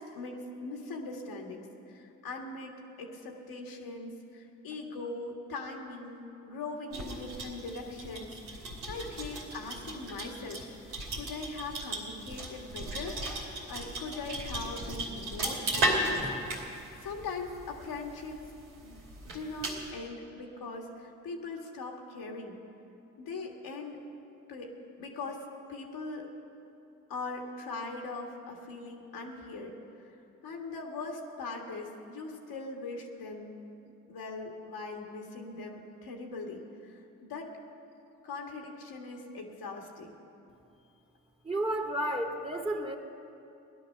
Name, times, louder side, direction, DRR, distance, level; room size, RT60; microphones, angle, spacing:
voice 1, 0.0-10.6 10.9-13.2 13.7-16.6 17.0-18.4 18.8-19.0 19.3-22.6 23.2-24.0 24.5-26.3 27.1-29.8 30.4-33.5 34.1-37.5 38.2-40.1, left 3 dB, 70° left, 1 dB, 1.9 m, -41 dB
sound 1, 6.9-19.9, right 1 dB, 85° right, 2.7 m, -36 dB
voice 2, 41.4-43.0, right 1 dB, 15° right, 2 dB, 2.2 m, -31 dB
17.0 x 11.0 x 6.6 m, 2.7 s
hypercardioid pair, 40°, 38 cm